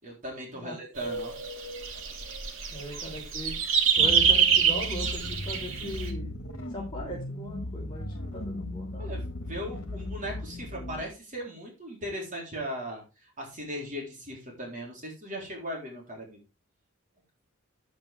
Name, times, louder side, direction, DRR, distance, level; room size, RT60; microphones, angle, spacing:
voice 1, 0.0-1.4 9.0-16.4, equal, 40° right, -1 dB, 3.8 m, -38 dB
sound 1, 1.0-6.1, right 7 dB, 70° right, 2.4 m, -26 dB
voice 2, 2.7-9.2, right 1 dB, 20° left, -4 dB, 4.1 m, -39 dB
sound 2, 4.0-11.0, left 1 dB, 70° left, 1.7 m, -37 dB
10.5 x 8.5 x 3.5 m, 0.29 s
head